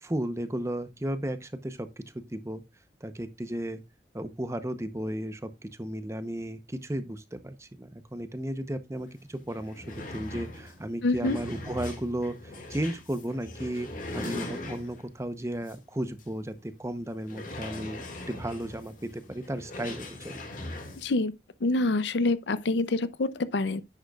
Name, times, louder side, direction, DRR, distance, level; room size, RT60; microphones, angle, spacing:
voice 1, 0.0-2.6 3.0-3.8 4.1-5.5 5.8-20.4, right 1 dB, 15° right, 0.8 m, -34 dB
sound 1, 9.1-9.2 9.4-15.2 15.6-15.8 16.2-16.3 17.2-21.1, left 2 dB, 45° left, 2.0 m, -40 dB
voice 2, 11.0-11.4 21.0-21.3 21.6-23.8, left 2 dB, 75° left, 0.6 m, -26 dB
10.0 x 7.9 x 2.4 m
head